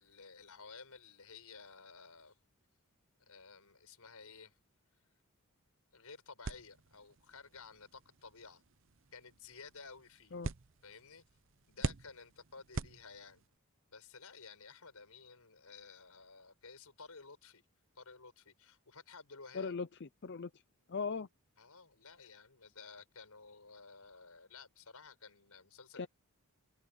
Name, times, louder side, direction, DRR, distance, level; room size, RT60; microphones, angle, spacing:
voice 1, 0.0-2.4 3.2-4.6 5.9-8.6 9.1-10.4 10.8-11.2 11.7-13.4 13.9-17.6 18.0-19.7 21.6-26.1, left 4 dB, 85° left, 5.5 m, -54 dB
sound 1, 6.4-13.6, right 3 dB, 60° right, 0.8 m, -45 dB
voice 2, 19.5-20.5 20.9-21.3 26.0-26.1, left 5 dB, 50° left, 0.6 m, -39 dB
head